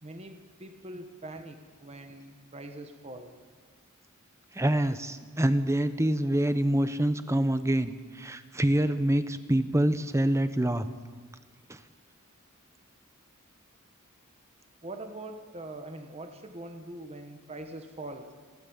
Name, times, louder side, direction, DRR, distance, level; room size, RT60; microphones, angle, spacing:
voice 1, 0.0-3.4 14.8-18.3, right 2 dB, 30° right, 6 dB, 1.4 m, -43 dB
voice 2, 4.5-10.9, right 1 dB, 15° right, 11 dB, 0.9 m, -26 dB
29.5 x 12.5 x 7.2 m, 1.6 s
head